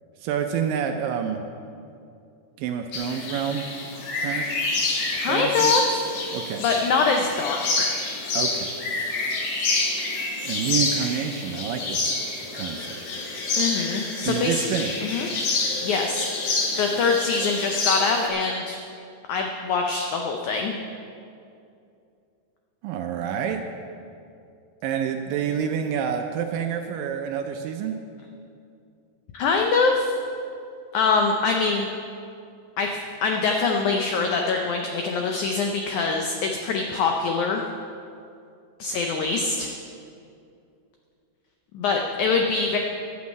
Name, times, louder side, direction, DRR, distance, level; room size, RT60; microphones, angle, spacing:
voice 1, 0.2-1.4 2.6-3.6 4.2-4.5 5.3-5.8 6.3-6.6 8.4-8.8 10.4-12.1 12.5-13.0 14.2-14.9 22.8-23.6 24.8-28.0, right 8 dB, 80° right, 5 dB, 2.1 m, -28 dB
sound 1, 2.9-18.3, left 3 dB, 60° left, 2.6 m, -28 dB
voice 2, 5.1-6.0 6.6-8.0 13.6-14.7 15.0-15.3 15.8-16.3 16.8-18.8 19.3-20.8 29.3-30.1 30.9-31.9 32.8-32.9 33.2-37.6 38.8-39.7 41.7-42.8, left 4 dB, 85° left, 2 dB, 1.7 m, -24 dB
11.5 x 6.3 x 8.3 m, 2.5 s
omnidirectional pair, 4.4 m